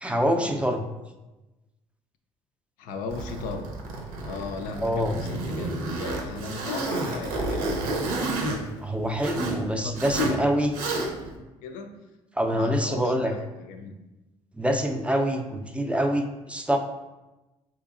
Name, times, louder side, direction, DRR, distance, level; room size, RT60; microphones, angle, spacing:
voice 1, 0.0-0.8 4.8-5.1 8.7-10.7 12.4-13.3 14.6-16.8, equal, 10° right, 4 dB, 0.4 m, -25 dB
voice 2, 2.8-3.8 4.2-7.9 9.5-12.0 12.5-14.0, left 3 dB, 75° left, 5 dB, 0.4 m, -38 dB
Zipper (clothing), 3.1-9.6 9.9-10.4 10.7-11.3, right 2 dB, 75° right, 0.6 m, -30 dB
3.9 x 2.9 x 2.4 m, 1.1 s
hypercardioid pair, 60°, 14 cm